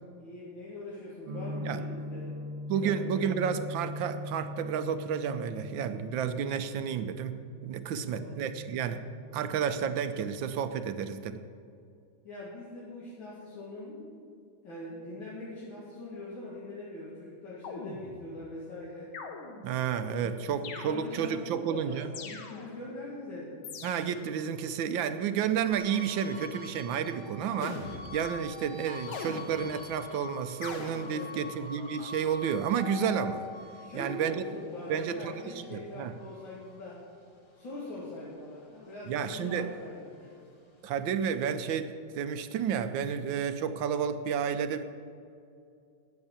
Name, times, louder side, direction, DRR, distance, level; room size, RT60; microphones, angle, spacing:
voice 1, 0.2-2.4 2.7-3.3 7.9-8.4 12.2-14.2 14.6-19.1 20.2-23.6 31.1-31.7 33.8-37.0 37.5-40.4, left 1 dB, 70° left, -7 dB, 2.7 m, -43 dB
sound 1, 1.2-11.0, left 1 dB, 50° right, 1.4 m, -42 dB
voice 2, 2.7-9.0 9.3-11.4 19.6-22.1 23.8-33.5 33.9-34.4 34.9-36.1 39.1-39.7 40.8-44.8, right 7 dB, 75° right, 10 dB, 1.3 m, -31 dB
sound 2, 17.6-18.4 19.1-19.9 20.6-21.4 22.1-22.9 23.6-24.4 27.6-28.4 29.1-29.9 30.6-31.4, left 4 dB, 90° left, 1.9 m, -42 dB
sound 3, 25.7-38.3 38.7-40.4, left 4 dB, 25° left, 0.6 m, -46 dB
9.5 x 8.1 x 8.7 m, 2.5 s
omnidirectional pair, 2.2 m